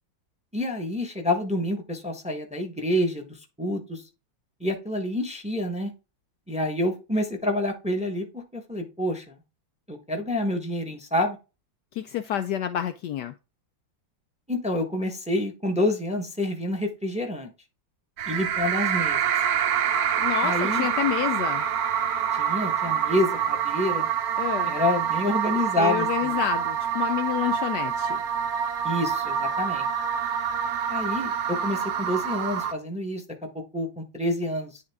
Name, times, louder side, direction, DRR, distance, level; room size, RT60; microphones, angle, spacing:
voice 1, 0.5-4.0 4.6-5.9 6.5-9.3 9.9-11.4 14.5-17.5 18.3-19.2 20.4-20.9 22.3-24.1 24.7-26.4 28.8-29.9 30.9-33.2 33.5-34.8, left 1 dB, 5° right, 1.0 m, -28 dB
voice 2, 11.9-13.3 20.2-21.6 24.4-24.7 25.8-28.2, left 11 dB, 75° left, 1.0 m, -28 dB
sound 1, 18.2-32.7, right 8 dB, 65° right, 1.0 m, -26 dB
10.0 x 3.7 x 3.5 m
omnidirectional pair, 2.1 m